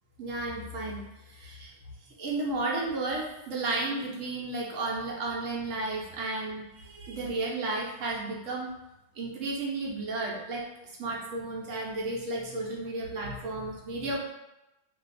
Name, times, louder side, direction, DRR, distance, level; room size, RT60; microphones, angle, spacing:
voice 1, 0.2-1.7 2.2-8.7 9.2-10.6 11.0-14.2, right 2 dB, 90° right, -2 dB, 1.2 m, -33 dB
2.8 x 2.5 x 4.0 m, 0.94 s
omnidirectional pair, 1.3 m